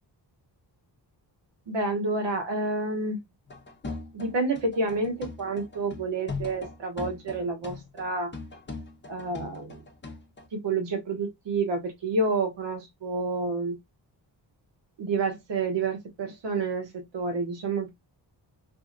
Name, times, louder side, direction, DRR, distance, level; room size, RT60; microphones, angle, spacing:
voice 1, 1.7-3.2 4.1-8.3 9.1-9.8 10.5-13.8 15.0-17.9, right 3 dB, 80° right, 1.0 m, -29 dB
sound 1, 3.5-10.5, left 3 dB, 25° left, 0.6 m, -40 dB
2.7 x 2.6 x 2.5 m
wide cardioid pair, 100°, 43 cm